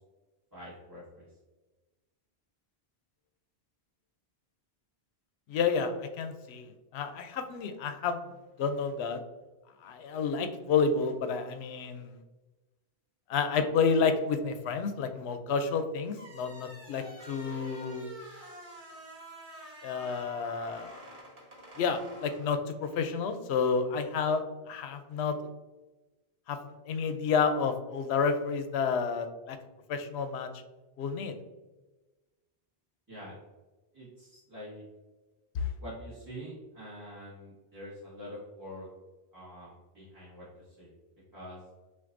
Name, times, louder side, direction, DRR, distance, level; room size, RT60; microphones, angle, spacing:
voice 1, 0.5-1.3 33.1-33.4 33.9-34.8 35.8-38.9 39.3-40.9 41.3-41.6, equal, 20° right, -10 dB, 1.3 m, -45 dB
voice 2, 5.5-6.7 6.9-8.2 8.6-9.2 9.8-12.2 13.3-18.1 19.8-20.9 21.8-25.4 26.5-26.6 26.9-29.6 29.9-30.5 31.0-31.4 35.5-35.6, left 5 dB, 75° left, 8 dB, 0.8 m, -30 dB
sound 1, 16.1-23.1, right 1 dB, 40° right, 0.9 m, -48 dB
5.9 x 2.5 x 2.5 m, 1.2 s
omnidirectional pair, 1.1 m